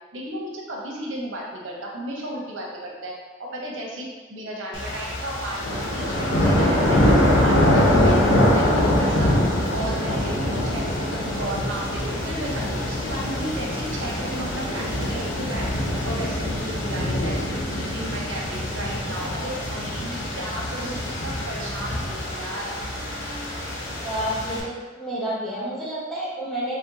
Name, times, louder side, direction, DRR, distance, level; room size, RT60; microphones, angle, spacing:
voice 1, 0.1-3.1 3.6-9.3 9.7-11.0 11.2-15.7 16.0-17.4 17.7-22.7, right 1 dB, 85° right, -3 dB, 0.9 m, -34 dB
sound 1, 4.7-24.6, left 1 dB, 80° left, 0.8 m, -24 dB
voice 2, 24.0-26.8, right 1 dB, ahead, -8 dB, 0.8 m, -29 dB
4.3 x 3.1 x 2.8 m, 1.3 s
head